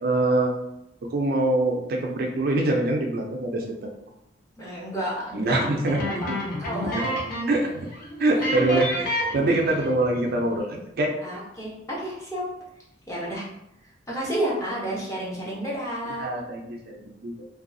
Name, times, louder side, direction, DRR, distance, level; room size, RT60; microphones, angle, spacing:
voice 1, 0.0-0.5 1.1-3.9 5.3-6.0 6.8-7.1 7.5-7.9 8.2-11.1 16.2-17.5, right 2 dB, 55° right, 1 dB, 0.4 m, -24 dB
voice 2, 4.6-5.7 6.0-6.3 6.6-7.1 8.0-8.4 8.7-8.8 11.2-12.4 13.1-13.4 14.1-16.3, right 1 dB, 15° left, -6 dB, 0.8 m, -31 dB
sound 1, 5.5-7.7 7.9-8.1 8.4-10.0, equal, 50° left, 0.7 m, -29 dB
2.6 x 2.3 x 2.5 m, 0.81 s
head